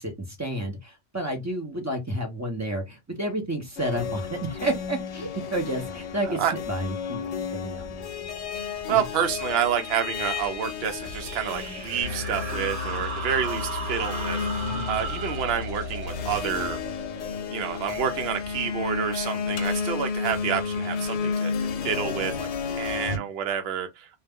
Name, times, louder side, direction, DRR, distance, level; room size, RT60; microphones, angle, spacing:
voice 1, 0.0-8.1 8.9-9.0 14.6-14.9, right 1 dB, 20° right, 0.5 m, -31 dB
sound 1, 3.8-23.2, left 5 dB, 70° left, 0.8 m, -32 dB
voice 2, 8.9-14.4 14.9-16.8 17.5-21.5 21.8-22.5 22.8-24.1, right 8 dB, 65° right, 0.8 m, -28 dB
sound 2, 11.0-18.3, right 4 dB, 85° right, 1.0 m, -37 dB
sound 3, 12.0-16.4, left 6 dB, 35° left, 0.6 m, -36 dB
2.4 x 2.1 x 3.5 m
omnidirectional pair, 1.2 m